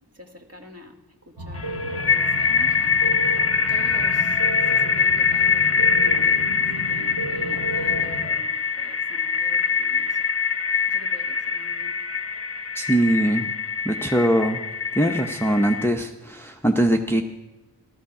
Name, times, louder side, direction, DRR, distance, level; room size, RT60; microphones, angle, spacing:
voice 1, 0.2-1.0 1.3-3.2 3.7-4.4 4.7-6.5 6.8-10.2 10.9-12.0, equal, 35° right, 2 dB, 1.9 m, -45 dB
sound 1, 1.4-8.3, right 1 dB, 80° right, 2.0 m, -33 dB
sound 2, 1.6-15.9, left 5 dB, 35° left, 0.8 m, -23 dB
voice 2, 12.8-13.5 13.9-14.6 14.9-17.2, right 1 dB, 5° left, 4 dB, 0.8 m, -21 dB
14.5 x 13.0 x 4.9 m, 1.1 s
wide cardioid pair, 50°, 41 cm